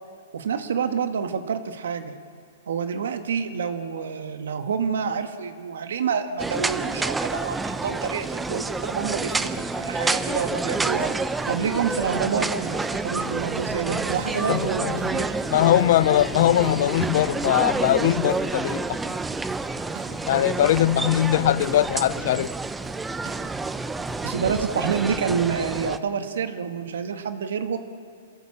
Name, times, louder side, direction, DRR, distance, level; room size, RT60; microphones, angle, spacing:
voice 1, 0.3-2.2 2.7-11.1 11.5-15.3 24.2-27.8, right 6 dB, 80° right, 1.8 m, -28 dB
sound 1, 6.4-26.0, right 3 dB, 5° right, 0.6 m, -28 dB
sound 2, 10.8-12.0 12.4-25.6, right 5 dB, 45° right, 4.8 m, -47 dB
voice 2, 14.5-15.2 15.5-19.2 20.3-22.5, left 13 dB, 55° left, 0.5 m, -21 dB
28.0 x 16.5 x 7.4 m
hypercardioid pair, 150°, 0 cm